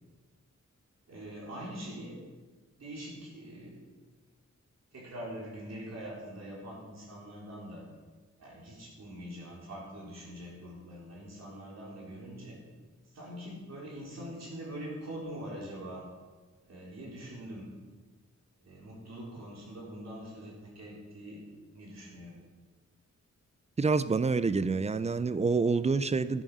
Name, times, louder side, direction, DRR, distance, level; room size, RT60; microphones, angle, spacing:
voice 1, 1.1-2.2 2.8-3.8 4.9-7.9 8.4-12.6 13.1-16.1 16.6-17.7 18.6-21.4 21.7-22.4, equal, 60° right, -5 dB, 4.0 m, -43 dB
voice 2, 23.8-26.4, right 4 dB, 25° right, 14 dB, 0.4 m, -27 dB
13.5 x 9.5 x 6.2 m, 1.3 s
wide cardioid pair, 165°, 29 cm